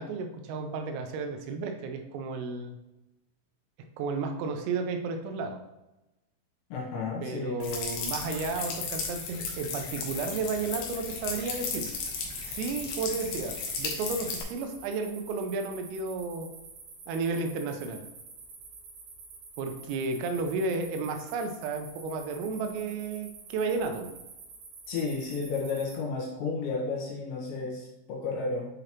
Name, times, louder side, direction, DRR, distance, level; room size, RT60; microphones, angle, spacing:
voice 1, 0.0-2.7 4.0-5.6 7.2-11.9 12.4-16.5 17.1-18.1 19.6-24.1, right 4 dB, 90° right, 5 dB, 3.4 m, -33 dB
voice 2, 6.7-7.6 24.9-28.7, left 4 dB, 70° left, -3 dB, 3.2 m, -32 dB
sound 1, 7.6-14.4, left 4 dB, 85° left, 2.1 m, -35 dB
sound 2, 11.9-26.0, right 4 dB, 65° right, 2.7 m, -48 dB
9.2 x 3.9 x 2.9 m, 0.98 s
omnidirectional pair, 5.9 m